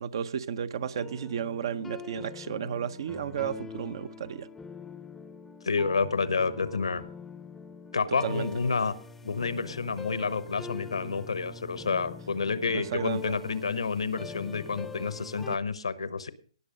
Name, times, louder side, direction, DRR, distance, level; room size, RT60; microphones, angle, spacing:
voice 1, 0.0-4.5 8.2-8.5 12.7-13.3, right 8 dB, 55° right, 0.8 m, -33 dB
sound 1, 0.8-15.6, left 4 dB, 5° left, 0.7 m, -44 dB
voice 2, 5.6-7.0 7.9-8.9 9.2-16.3, left 4 dB, 80° left, 1.1 m, -29 dB
18.5 x 6.8 x 5.2 m
hypercardioid pair, 135°, 3 cm